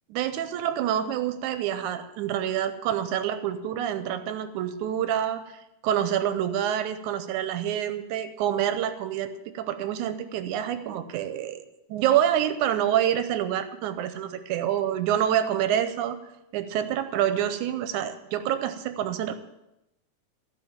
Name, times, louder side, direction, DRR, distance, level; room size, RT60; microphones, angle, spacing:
voice 1, 0.1-11.6 11.9-16.2 16.5-19.3, right 10 dB, 90° right, 10 dB, 2.2 m, -27 dB
14.5 x 5.3 x 8.7 m, 0.90 s
omnidirectional pair, 3.4 m